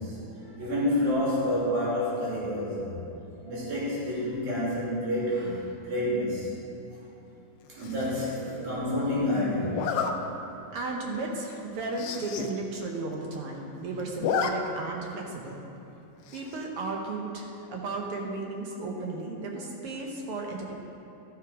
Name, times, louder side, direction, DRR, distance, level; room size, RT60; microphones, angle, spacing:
voice 1, 0.0-3.0 3.4-6.5 7.8-10.1 19.6-19.7, left 1 dB, 90° right, -8 dB, 4.3 m, -29 dB
Zipper (clothing), 7.8-8.2 9.7-10.1 10.7-10.9 11.2-11.3 11.5-11.6 11.9-12.5 12.9-13.0 13.1-13.7 14.0-14.5 14.8-14.9 16.3-16.7, left 7 dB, 85° left, 1.3 m, -31 dB
voice 2, 10.7-15.6 16.3-20.7, right 3 dB, 60° right, 0 dB, 1.6 m, -34 dB
12.5 x 6.4 x 5.0 m, 2.8 s
omnidirectional pair, 3.4 m